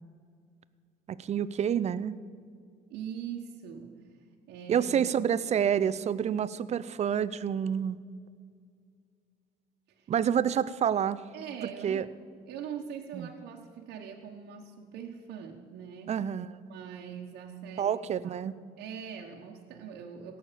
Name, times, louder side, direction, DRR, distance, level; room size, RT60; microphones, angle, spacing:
voice 1, 1.1-2.1 4.7-8.0 10.1-11.2 11.8-12.0 13.1-13.3 16.1-16.5 17.8-18.6, right 8 dB, 40° right, 17 dB, 0.5 m, -28 dB
voice 2, 2.9-3.9 4.5-5.1 9.9-10.1 11.3-12.1 12.5-16.2 16.7-17.9 18.2-18.3 18.8-20.4, right 8 dB, 75° right, 0 dB, 1.2 m, -42 dB
16.5 x 6.5 x 7.4 m, 2.2 s
cardioid pair, 110°, 17 cm